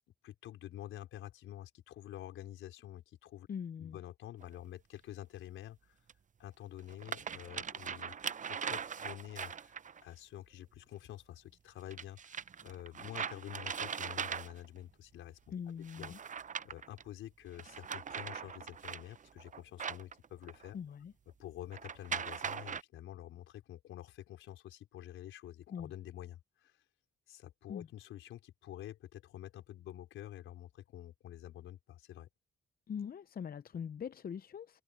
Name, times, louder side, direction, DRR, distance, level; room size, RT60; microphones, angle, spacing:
voice 1, 0.2-3.5 3.8-6.0 6.4-8.1 8.5-9.7 10.0-15.4 15.8-20.8 21.4-26.8 27.3-32.3, left 12 dB, 90° left, 4.8 m, -48 dB
voice 2, 3.5-4.0 15.5-16.2 20.7-21.1 25.7-25.9 27.7-27.9 32.9-34.8, left 7 dB, 50° left, 0.7 m, -42 dB
sound 1, 4.4-4.5 6.1-6.2 6.8-10.0 11.9-14.8 15.8-17.0 17.5-20.7 21.7-22.8, right 7 dB, 40° right, 0.6 m, -41 dB
supercardioid pair, 60°, 20 cm